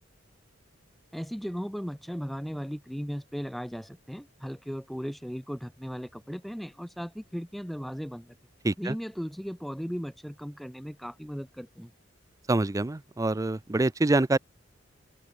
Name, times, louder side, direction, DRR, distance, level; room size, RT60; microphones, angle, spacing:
voice 1, 1.1-8.4 8.8-11.9, equal, ahead, 7.0 m, -37 dB
voice 2, 8.6-8.9 12.5-14.4, right 2 dB, 15° right, 0.5 m, -25 dB
open air
head